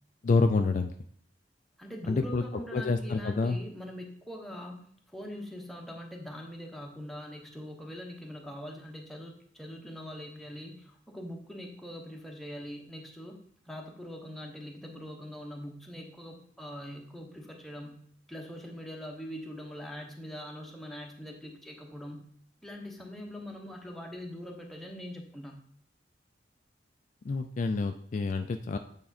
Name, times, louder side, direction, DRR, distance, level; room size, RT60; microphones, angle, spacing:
voice 1, 0.2-0.9 2.1-2.4 2.7-3.6 27.2-28.8, left 3 dB, 45° left, 7 dB, 0.3 m, -27 dB
voice 2, 1.8-4.8 5.1-13.4 13.7-18.0 18.3-22.3 22.6-25.5, equal, ahead, 0 dB, 0.9 m, -42 dB
8.5 x 3.7 x 4.1 m, 0.63 s
head